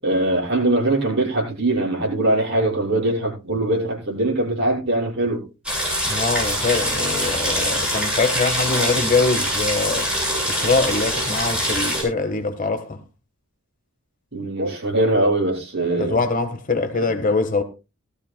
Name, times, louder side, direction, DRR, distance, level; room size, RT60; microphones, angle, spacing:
voice 1, 0.0-5.4 14.3-16.2, right 2 dB, 60° right, 6.2 m, -21 dB
sound 1, 5.7-12.0, equal, 5° right, 7.3 m, -23 dB
voice 2, 6.1-10.1 10.5-13.0 16.0-17.6, left 3 dB, 40° left, 1.4 m, -23 dB
18.5 x 13.5 x 2.2 m
head